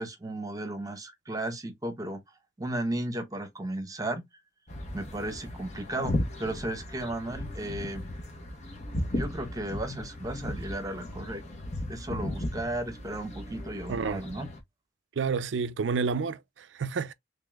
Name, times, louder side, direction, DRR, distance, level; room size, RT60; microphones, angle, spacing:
voice 1, 0.0-2.2 2.6-4.2 4.9-8.0 9.1-11.4 11.9-14.5, right 1 dB, 20° right, 1.0 m, -34 dB
sound 1, 4.7-14.6, left 1 dB, 40° left, 1.0 m, -36 dB
voice 2, 13.9-14.2 15.2-17.1, right 5 dB, 90° right, 0.5 m, -30 dB
3.7 x 3.4 x 2.3 m
head